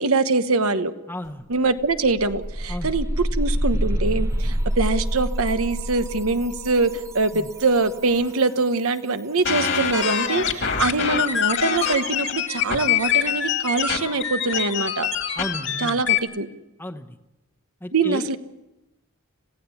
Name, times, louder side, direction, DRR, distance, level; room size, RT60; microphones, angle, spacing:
voice 1, 0.0-0.9 1.5-15.1 15.8-16.5 17.9-18.4, right 3 dB, 85° right, 10 dB, 1.2 m, -23 dB
voice 2, 1.1-1.5 2.7-2.9 7.3-7.5 15.4-16.0 16.8-17.2 17.8-18.3, left 1 dB, 10° left, 5 dB, 1.0 m, -33 dB
sound 1, 1.2-1.3 1.7-8.4, equal, 15° right, 0.7 m, -27 dB
sound 2, 9.4-16.2, left 8 dB, 60° left, 2.3 m, -24 dB
26.5 x 17.0 x 7.0 m, 0.96 s
head